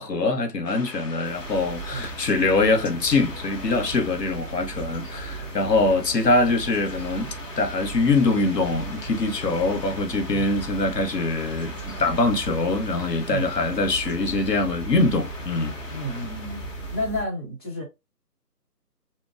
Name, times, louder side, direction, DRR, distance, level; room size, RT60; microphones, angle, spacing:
voice 1, 0.0-15.7, left 3 dB, 80° left, 0.9 m, -23 dB
sound 1, 0.6-17.0, left 3 dB, 50° left, 0.8 m, -42 dB
sound 2, 1.2-17.2, right 3 dB, 15° right, 0.9 m, -37 dB
voice 2, 15.9-16.6 16.9-17.8, equal, 15° left, 1.0 m, -31 dB
2.9 x 2.2 x 2.4 m
figure-of-eight pair, 150°, 49 cm